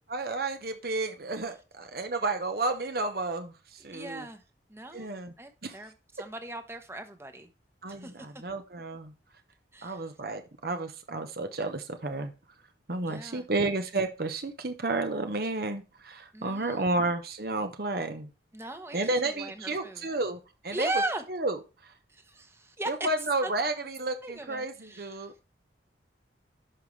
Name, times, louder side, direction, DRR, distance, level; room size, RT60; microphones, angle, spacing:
voice 1, 0.1-3.5 3.8-4.3 4.9-5.3 5.6-5.8 7.8-9.1 9.8-12.3 12.9-18.3 18.9-20.9 21.3-21.6 22.9-25.3, right 2 dB, 55° right, 7 dB, 1.0 m, -31 dB
voice 2, 3.9-4.4 4.7-5.1 5.4-5.9 6.2-7.5 7.9-8.3 9.7-10.0 13.1-13.4 16.3-16.8 18.5-20.1 20.7-21.2 22.1-23.1 23.4-23.5 24.2-25.3, right 2 dB, 15° right, 7 dB, 1.0 m, -37 dB
11.0 x 5.5 x 3.3 m, 0.31 s
head